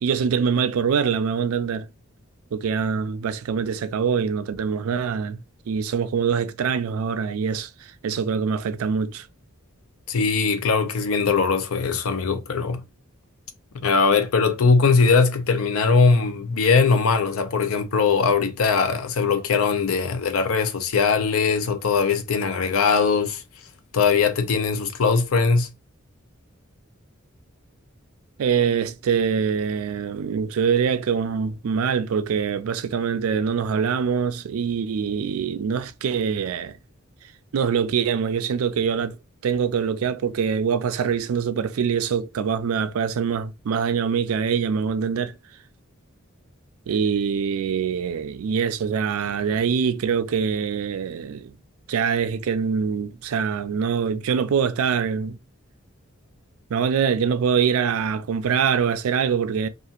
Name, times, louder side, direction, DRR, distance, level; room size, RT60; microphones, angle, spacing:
voice 1, 0.0-1.9 2.5-9.3 28.4-36.8 37.5-39.2 39.4-45.3 46.9-51.5 51.9-55.4 56.7-59.7, right 6 dB, 85° right, 0.4 m, -24 dB
voice 2, 10.1-12.8 13.8-23.4 23.9-25.7, left 5 dB, 80° left, 0.5 m, -20 dB
2.8 x 2.4 x 2.4 m
head